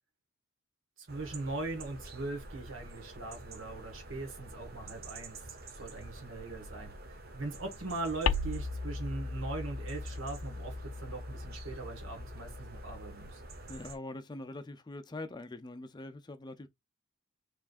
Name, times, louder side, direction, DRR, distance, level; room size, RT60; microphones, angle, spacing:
voice 1, 1.0-5.4 5.7-6.9 7.3-10.7 11.0-13.4, right 2 dB, 70° right, 1.6 m, -40 dB
sound 1, 1.1-14.0, right 2 dB, 50° right, 1.1 m, -48 dB
sound 2, 8.2-13.1, left 4 dB, 85° left, 0.5 m, -37 dB
voice 2, 13.7-16.7, left 2 dB, 20° left, 0.5 m, -43 dB
4.7 x 3.2 x 2.5 m
head